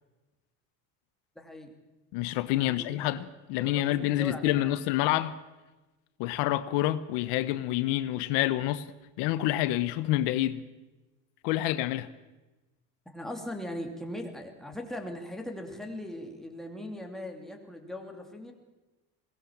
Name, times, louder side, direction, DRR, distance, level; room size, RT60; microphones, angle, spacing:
voice 1, 1.4-1.7 2.5-3.2 3.6-4.8 13.1-18.5, left 1 dB, ahead, 2.6 m, -40 dB
voice 2, 2.1-5.4 6.2-8.8 9.2-10.6 11.4-12.1, left 14 dB, 75° left, 1.1 m, -28 dB
21.5 x 19.0 x 7.3 m
cardioid pair, 165°, 41 cm